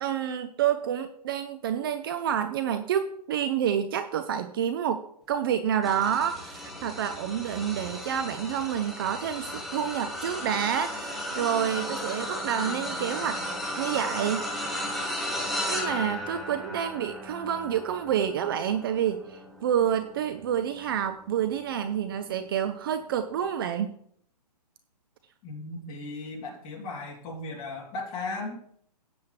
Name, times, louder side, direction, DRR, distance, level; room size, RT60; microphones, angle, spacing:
voice 1, 0.0-13.4 13.8-14.5 15.7-23.9, right 9 dB, 35° right, 10 dB, 0.6 m, -28 dB
sound 1, 5.8-21.3 21.9-22.1 23.4-23.5, left 1 dB, ahead, 1.2 m, -35 dB
voice 2, 25.4-28.6, left 2 dB, 25° left, -3 dB, 3.0 m, -36 dB
13.5 x 8.8 x 3.3 m, 0.68 s
hypercardioid pair, 155°, 21 cm